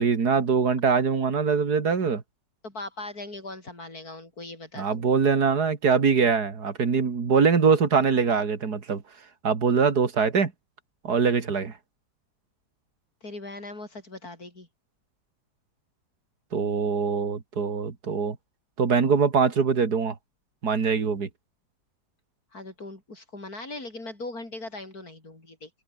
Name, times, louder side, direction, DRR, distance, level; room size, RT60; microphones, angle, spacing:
voice 1, 0.0-2.2 4.8-9.0 9.4-10.5 11.0-11.7 16.5-18.4 18.8-20.2 20.6-21.3, right 5 dB, 70° right, 2.8 m, -23 dB
voice 2, 2.6-5.0 13.2-14.7 22.5-25.7, left 2 dB, 65° left, 6.6 m, -39 dB
open air
omnidirectional pair, 1.8 m